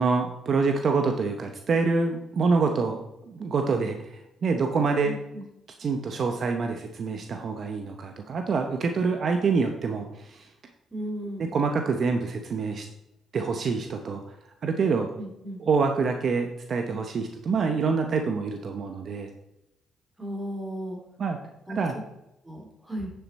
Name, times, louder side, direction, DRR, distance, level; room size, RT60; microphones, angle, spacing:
voice 1, 0.0-5.1 5.8-10.5 11.4-12.9 13.3-14.2 14.6-15.1 15.6-19.3 21.2-21.4 21.7-21.9, right 4 dB, 50° right, 5 dB, 0.8 m, -26 dB
voice 2, 5.0-5.4 10.9-11.5 15.2-15.6 20.2-21.0 21.7-21.8 22.4-23.1, equal, 15° right, 1 dB, 2.7 m, -35 dB
9.3 x 7.0 x 4.2 m, 0.90 s
cardioid pair, 90°, 0 cm